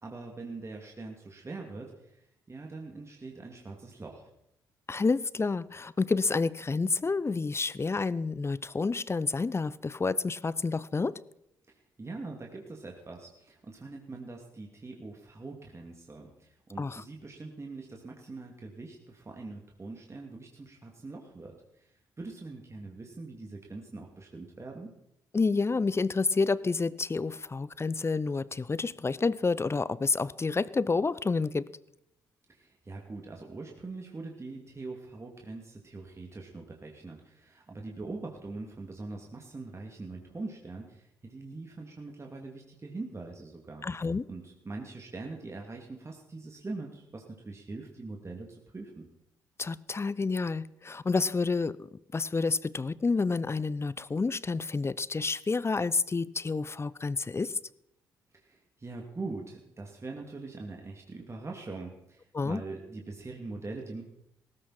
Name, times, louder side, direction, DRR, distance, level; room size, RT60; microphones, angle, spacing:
voice 1, 0.0-2.2 2.5-4.3 11.7-24.9 32.5-43.9 44.3-49.1 58.3-64.0, right 3 dB, 30° right, 1 dB, 2.8 m, -43 dB
voice 2, 4.9-11.2 16.8-17.0 25.3-31.7 43.8-44.2 49.6-51.8 52.1-57.5 62.3-62.6, left 4 dB, 25° left, 20 dB, 0.7 m, -29 dB
18.5 x 16.5 x 4.4 m, 0.79 s
hypercardioid pair, 40°, 10 cm